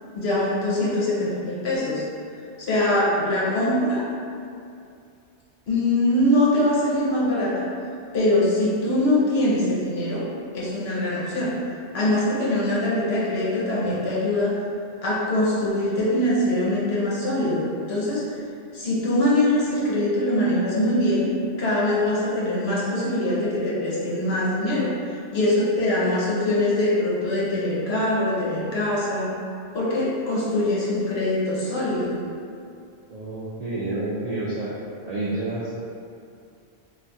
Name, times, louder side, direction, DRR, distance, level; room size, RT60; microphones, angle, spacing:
voice 1, 0.1-2.0 2.6-4.1 5.7-7.7 8.1-10.3 10.5-11.5 11.9-14.6 15.0-18.2 18.7-21.3 21.6-29.3 29.7-32.2, left 1 dB, 65° left, -7 dB, 0.9 m, -23 dB
voice 2, 33.1-34.7 35.0-35.8, right 2 dB, 70° right, -7 dB, 0.3 m, -29 dB
2.4 x 2.3 x 3.9 m, 2.5 s
omnidirectional pair, 1.2 m